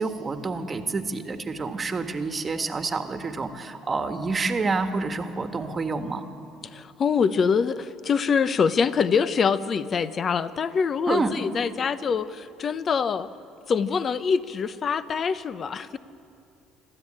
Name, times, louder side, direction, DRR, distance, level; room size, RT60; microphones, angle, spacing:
voice 1, 0.0-6.3 11.1-11.3, right 4 dB, 30° right, 7 dB, 1.5 m, -28 dB
voice 2, 6.7-13.3 13.7-16.0, left 6 dB, 40° left, 14 dB, 0.8 m, -24 dB
26.0 x 13.0 x 8.8 m, 2.7 s
supercardioid pair, 100°, 0 cm